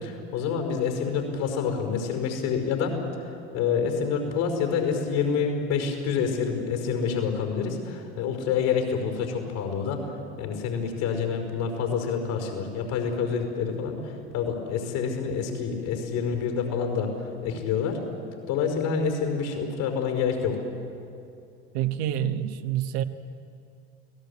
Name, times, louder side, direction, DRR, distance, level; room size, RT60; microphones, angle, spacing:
voice 1, 0.0-3.0 3.5-10.1 10.4-18.0 18.5-20.6, left 6 dB, 70° left, 4 dB, 5.4 m, -27 dB
voice 2, 21.7-23.0, right 11 dB, 75° right, 7 dB, 1.5 m, -27 dB
29.5 x 18.5 x 8.6 m, 2.6 s
hypercardioid pair, 85°, 33 cm